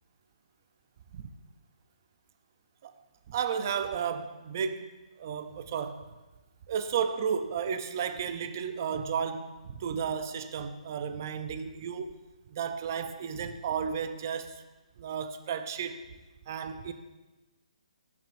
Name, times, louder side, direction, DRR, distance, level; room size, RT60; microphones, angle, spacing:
voice 1, 3.3-4.9 5.2-6.1 6.7-12.2 12.5-14.6 15.0-16.0 16.5-16.9, right 7 dB, 25° right, 9 dB, 0.4 m, -33 dB
13.5 x 5.9 x 2.5 m, 1.1 s
hypercardioid pair, 175°, 4 cm